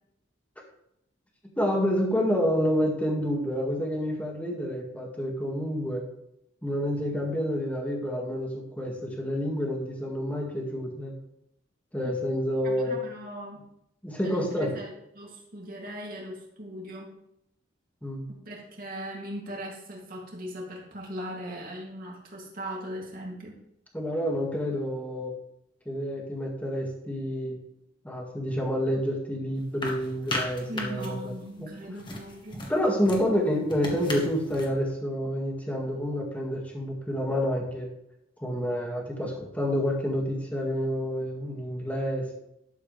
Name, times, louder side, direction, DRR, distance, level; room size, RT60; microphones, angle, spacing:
voice 1, 1.6-6.0 6.6-11.1 11.9-13.0 14.0-14.7 18.0-18.2 23.9-25.3 25.9-27.6 28.0-31.3 31.6-31.7 32.7-37.9 38.4-42.3, equal, 10° left, -1 dB, 2.0 m, -28 dB
voice 2, 12.6-13.6 14.2-17.1 18.3-23.6 30.7-32.7, equal, 50° right, -2 dB, 2.7 m, -39 dB
sound 1, 29.6-31.3 31.9-34.7, left 2 dB, 25° left, 1.6 m, -36 dB
12.0 x 7.4 x 3.4 m, 0.78 s
head